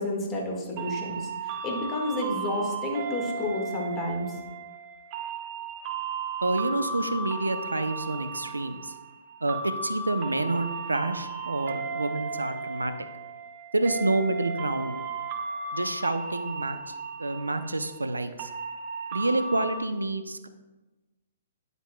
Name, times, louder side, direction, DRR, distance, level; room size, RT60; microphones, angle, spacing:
voice 1, 0.0-4.4, left 1 dB, 25° left, -1 dB, 1.6 m, -31 dB
sound 1, 0.8-19.8, right 4 dB, 35° right, 0.9 m, -35 dB
voice 2, 6.4-8.9 9.4-12.9 13.7-15.0 15.7-18.5 19.1-20.5, right 2 dB, 85° right, 10 dB, 0.5 m, -28 dB
9.3 x 8.0 x 2.2 m, 1.1 s
figure-of-eight pair, 120°, 0 cm